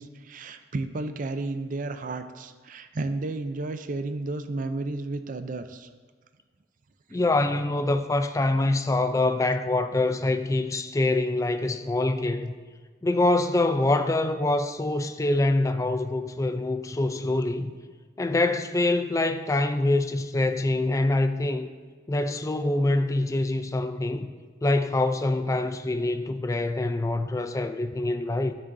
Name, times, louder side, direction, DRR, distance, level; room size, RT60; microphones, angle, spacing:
voice 1, 0.0-5.9, right 2 dB, 50° right, 0.5 m, -32 dB
voice 2, 7.1-12.5 13.0-17.7 18.2-21.7 22.1-24.3 24.6-28.5, left 2 dB, 20° left, 0.4 m, -25 dB
12.0 x 6.2 x 2.6 m
head